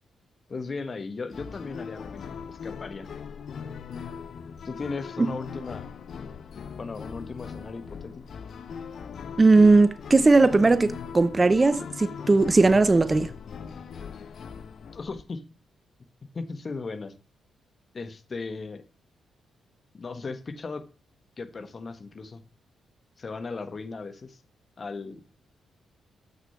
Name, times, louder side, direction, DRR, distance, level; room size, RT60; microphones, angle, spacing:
voice 1, 0.5-3.1 4.6-5.9 6.8-8.2 14.9-15.4 16.3-17.1 17.9-18.8 19.9-20.8 21.4-22.4 23.2-24.4 24.8-25.2, left 4 dB, 45° left, 1.4 m, -36 dB
sound 1, 1.3-15.2, left 6 dB, 60° left, 0.8 m, -40 dB
voice 2, 9.4-13.3, right 3 dB, 30° right, 0.7 m, -18 dB
8.0 x 6.7 x 5.7 m
hypercardioid pair, 40°, 0 cm